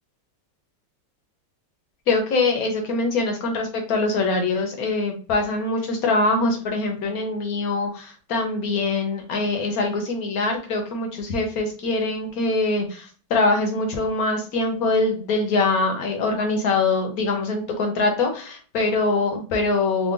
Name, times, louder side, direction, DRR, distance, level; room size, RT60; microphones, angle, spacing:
voice 1, 2.1-20.1, left 3 dB, 55° left, 3 dB, 1.2 m, -23 dB
3.9 x 2.1 x 3.7 m, 0.40 s
omnidirectional pair, 2.0 m